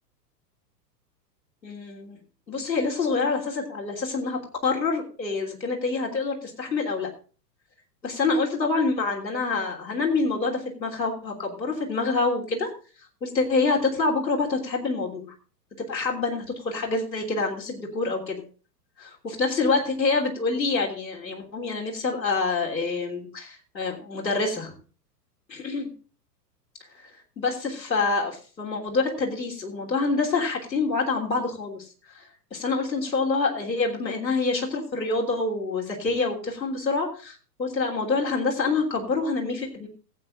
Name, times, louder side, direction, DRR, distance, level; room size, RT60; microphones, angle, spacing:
voice 1, 1.6-2.2 2.5-7.1 8.0-12.7 13.2-15.3 15.8-18.4 19.0-24.7 25.5-25.9 27.4-31.9 32.1-39.9, left 3 dB, 85° left, 1 dB, 3.4 m, -26 dB
15.0 x 8.4 x 3.8 m, 0.37 s
figure-of-eight pair, 105°, 50 cm